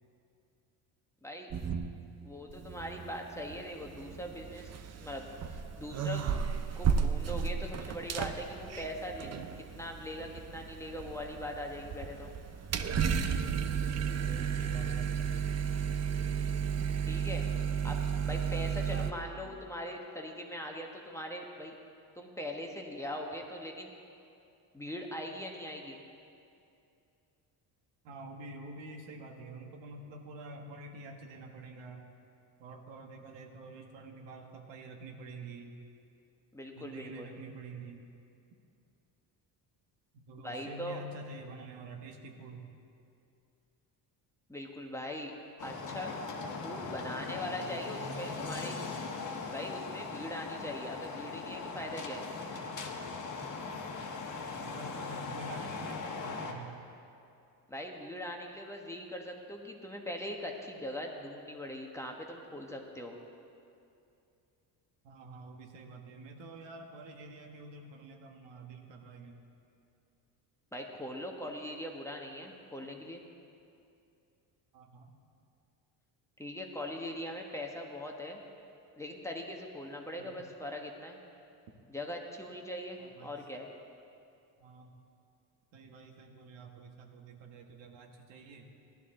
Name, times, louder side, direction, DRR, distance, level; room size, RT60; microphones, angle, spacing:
voice 1, 1.2-1.5 2.2-4.7 5.0-6.3 6.7-12.3 17.1-17.4 17.8-21.8 22.1-23.9 24.7-26.0 36.5-37.3 40.4-41.0 44.5-45.3 45.6-46.1 46.6-48.8 49.5-52.3 57.7-63.2 70.7-73.2 76.4-78.4 79.0-81.2 81.9-83.7, left 1 dB, 5° left, 1 dB, 1.2 m, -41 dB
sound 1, 1.5-2.2 2.5-19.1, right 7 dB, 35° right, 0.7 m, -34 dB
voice 2, 14.2-15.4 18.9-19.2 28.0-32.0 32.6-35.8 36.8-38.1 40.1-42.7 54.6-56.8 65.0-69.4 74.7-75.2 80.2-80.5 83.0-83.4 84.6-85.0 85.7-88.7, right 2 dB, 80° right, 2 dB, 1.6 m, -47 dB
sound 2, 45.6-56.5, left 4 dB, 45° left, 1.4 m, -39 dB
16.5 x 11.5 x 3.8 m, 2.6 s
cardioid pair, 110°, 43 cm